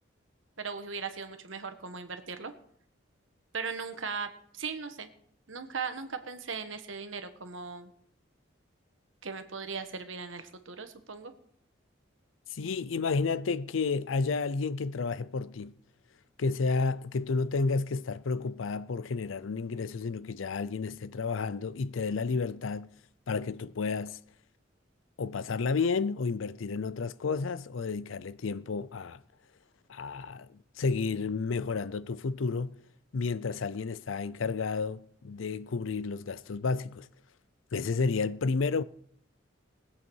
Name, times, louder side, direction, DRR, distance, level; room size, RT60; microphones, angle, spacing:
voice 1, 0.6-2.5 3.5-5.1 5.5-7.9 9.2-11.3, right 5 dB, 85° right, 1.4 m, -38 dB
voice 2, 12.5-15.7 16.4-22.9 23.3-24.2 25.2-29.2 29.9-30.5 30.8-32.7 33.1-37.1 37.7-38.8, left 4 dB, 85° left, 0.5 m, -31 dB
20.5 x 8.2 x 4.6 m
head